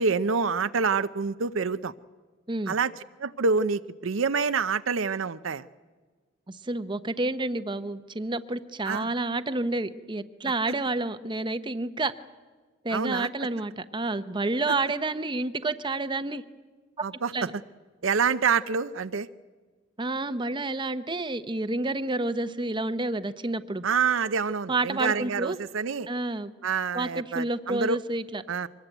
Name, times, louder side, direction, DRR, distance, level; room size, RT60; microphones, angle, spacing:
voice 1, 0.0-1.9 2.7-2.9 3.2-5.6 8.9-9.1 12.9-13.3 17.0-17.3 18.0-19.3 23.8-26.1 26.6-28.0 28.5-28.7, right 5 dB, 75° right, 12 dB, 0.6 m, -27 dB
voice 2, 6.5-12.1 12.8-16.4 17.3-17.5 20.0-23.8 24.7-25.6 26.1-26.5 26.9-28.4, right 2 dB, 25° right, 12 dB, 0.7 m, -29 dB
24.0 x 20.0 x 9.2 m, 1.4 s
head